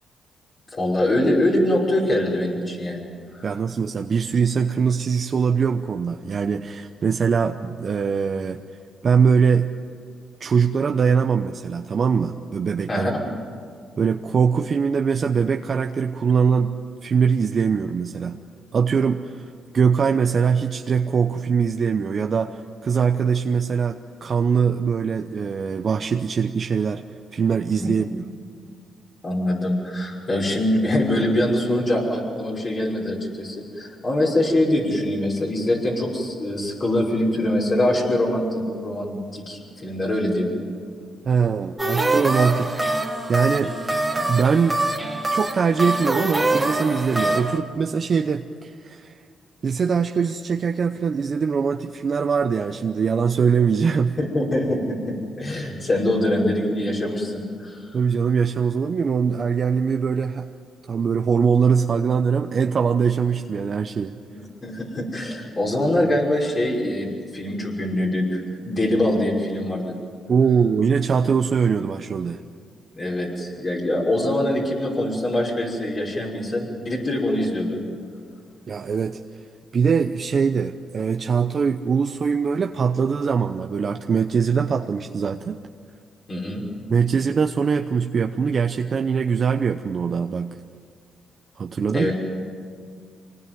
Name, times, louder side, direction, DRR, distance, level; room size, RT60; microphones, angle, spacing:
voice 1, 0.7-3.0 3.3-3.5 12.9-13.1 27.8-27.9 29.2-40.5 54.2-57.9 64.3-69.9 72.9-77.8 86.3-86.6 91.9-92.2, left 1 dB, 40° left, -3 dB, 5.9 m, -23 dB
voice 2, 3.4-8.6 9.0-9.7 10.4-13.1 14.0-16.7 17.0-18.4 18.7-27.0 27.3-28.2 41.2-43.0 43.3-43.7 44.3-44.8 45.3-49.1 49.6-54.2 57.9-60.5 60.9-64.2 70.3-72.4 78.7-79.2 79.7-85.6 86.9-90.6 91.6-92.1, right 6 dB, 50° right, 5 dB, 0.9 m, -22 dB
sound 1, 41.8-47.6, right 2 dB, 15° right, 2.5 m, -24 dB
25.0 x 19.5 x 9.4 m, 2.1 s
cardioid pair, 75°, 0 cm